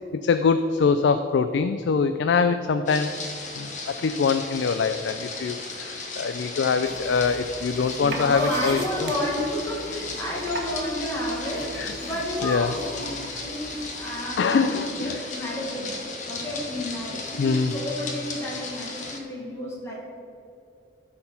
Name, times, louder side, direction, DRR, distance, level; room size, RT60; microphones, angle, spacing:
voice 1, 0.2-3.1 3.6-9.1 11.8-11.9 12.4-12.7 14.4-15.5 17.4-17.7, left 5 dB, 75° left, 9 dB, 0.4 m, -24 dB
sound 1, 2.9-19.2, left 3 dB, 40° left, 1.0 m, -36 dB
sound 2, 6.8-14.3, right 2 dB, 60° right, 1.2 m, -40 dB
voice 2, 8.0-15.9 16.3-20.0, left 1 dB, 15° left, -5 dB, 1.7 m, -31 dB
12.5 x 4.3 x 5.7 m, 2.5 s
head